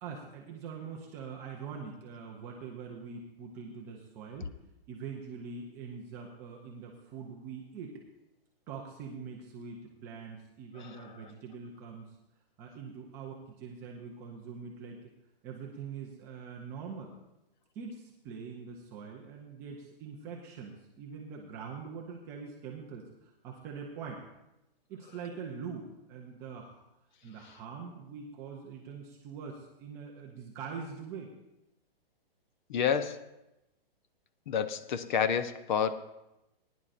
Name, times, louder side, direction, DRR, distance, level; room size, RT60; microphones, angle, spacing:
voice 1, 0.0-4.5 4.9-8.0 8.7-12.2 12.6-15.0 15.4-17.1 17.7-24.2 24.9-26.8 27.2-31.3, right 5 dB, 10° right, -1 dB, 0.3 m, -43 dB
voice 2, 32.7-33.2 34.5-36.2, left 7 dB, 50° left, 13 dB, 0.7 m, -29 dB
20.0 x 10.0 x 2.5 m, 0.91 s
hypercardioid pair, 150°, 30 cm